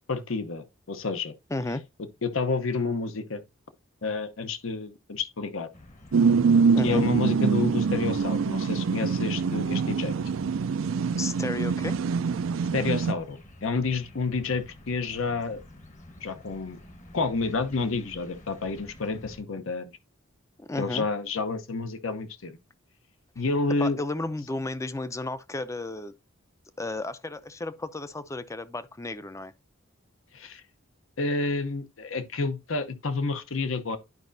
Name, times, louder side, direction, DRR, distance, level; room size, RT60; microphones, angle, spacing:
voice 1, 0.1-1.3 2.2-3.4 4.0-5.7 6.8-10.1 12.7-15.6 16.2-16.8 17.1-19.9 20.8-22.5 23.4-24.0 30.3-30.6 31.2-34.0, left 4 dB, 70° left, 0.9 m, -29 dB
voice 2, 1.5-1.8 6.7-7.0 11.2-12.0 20.6-21.1 23.8-26.1 26.8-29.5, left 2 dB, 15° left, 0.5 m, -33 dB
sound 1, 5.7-19.4, left 1 dB, 35° left, 1.1 m, -50 dB
sound 2, 6.1-13.1, right 5 dB, 70° right, 0.4 m, -24 dB
11.0 x 5.0 x 2.6 m
head